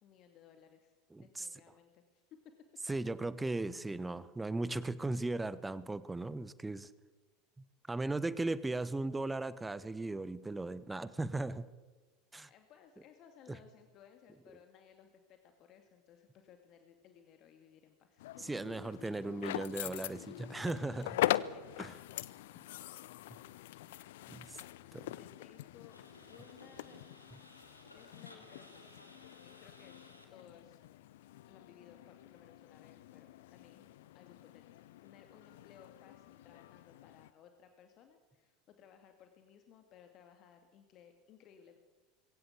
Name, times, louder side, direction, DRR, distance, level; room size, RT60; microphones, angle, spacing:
voice 1, 0.0-2.4 12.4-18.4 21.5-21.9 22.5-22.6 24.5-24.7 25.2-26.0 26.3-27.0 27.9-29.1 29.4-30.0 30.3-30.8 31.5-34.6 35.0-41.8, left 8 dB, 40° left, 6 dB, 2.3 m, -60 dB
voice 2, 1.1-1.5 2.9-6.9 7.9-11.7 12.3-12.5 18.4-21.2 21.8-21.9 24.3-24.6, right 2 dB, 10° right, 16 dB, 1.1 m, -37 dB
sound 1, 18.2-37.3, left 15 dB, 60° left, 0.7 m, -43 dB
sound 2, 25.9-30.4 35.0-35.1, left 1 dB, 90° left, 3.1 m, -58 dB
22.0 x 17.0 x 8.4 m, 1.3 s
figure-of-eight pair, 75°, 0 cm